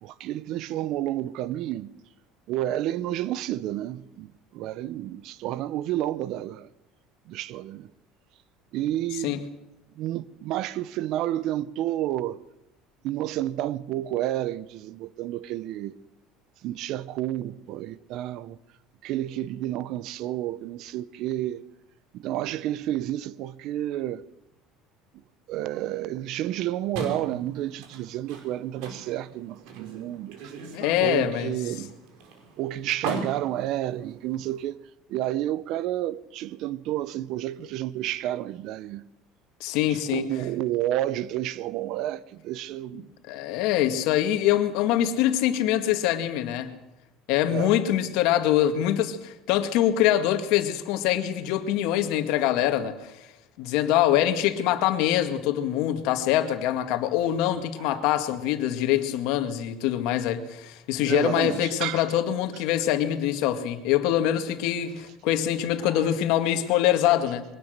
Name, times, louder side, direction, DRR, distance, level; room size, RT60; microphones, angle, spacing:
voice 1, 0.0-1.9 2.5-6.7 7.3-7.9 8.7-9.4 9.9-12.4 13.0-16.0 16.6-18.6 19.0-21.6 22.1-24.2 25.5-30.6 31.0-31.9 32.6-34.8 35.1-39.1 39.9-43.1 47.5-47.8 57.8-58.1 61.0-62.1 65.9-66.1, right 13 dB, 55° right, 0.7 m, -30 dB
sound 1, 26.9-34.7, right 3 dB, 75° right, 4.9 m, -39 dB
voice 2, 30.7-31.5 39.6-40.3 43.3-46.7 47.3-53.0 53.6-67.4, left 12 dB, 70° left, 2.0 m, -24 dB
22.5 x 18.0 x 6.6 m
cardioid pair, 150°, 0 cm